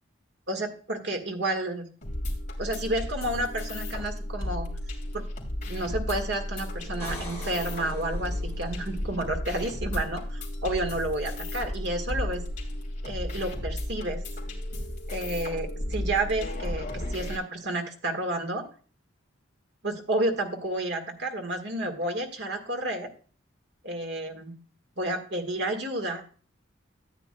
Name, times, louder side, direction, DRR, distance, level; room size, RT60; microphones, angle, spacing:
voice 1, 0.5-1.9 2.6-4.7 5.1-5.2 5.6-12.4 13.0-14.2 15.1-18.7 19.8-23.1 23.8-24.5 25.0-26.3, right 1 dB, 55° right, 4 dB, 1.6 m, -31 dB
sound 1, 2.0-17.4, left 1 dB, 40° left, 2.7 m, -34 dB
sound 2, 6.8-8.7 12.4-12.5, left 1 dB, 15° left, 4.0 m, -44 dB
13.5 x 9.1 x 2.2 m, 0.41 s
head